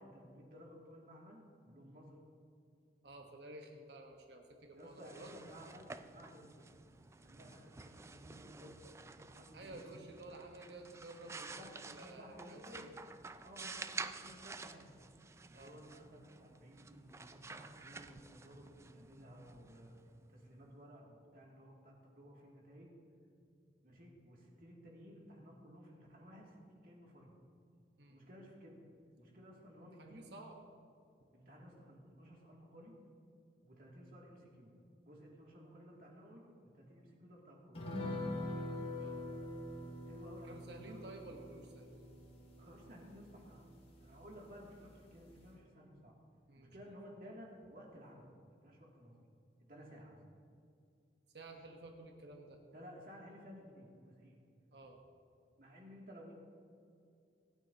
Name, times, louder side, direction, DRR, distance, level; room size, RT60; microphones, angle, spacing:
voice 1, 0.0-2.2 4.7-6.8 7.2-9.9 11.3-13.0 13.4-14.9 15.5-19.9 20.2-22.9 23.8-27.4 28.1-28.8 29.2-30.2 31.3-32.9 33.6-34.7 35.0-36.4 36.7-37.9 38.4-38.7 40.1-41.1 42.6-43.7 44.0-46.1 46.6-49.2 49.6-50.2 52.7-54.4 55.6-56.4, equal, 50° right, -3 dB, 2.6 m, -56 dB
voice 2, 3.0-5.3 9.5-12.9 15.5-15.8 28.0-28.2 30.0-30.6 38.9-39.2 40.4-42.1 46.5-46.9 51.3-52.6 54.7-55.0, right 2 dB, 70° right, 2 dB, 1.3 m, -53 dB
Abriendo Libro y Pasando Paginas, 4.8-20.5, right 4 dB, 15° right, 0.3 m, -51 dB
sound 1, 37.8-44.5 44.8-44.9 45.3-45.5, left 1 dB, 35° left, 1.9 m, -44 dB
26.0 x 9.0 x 2.9 m, 2.4 s
head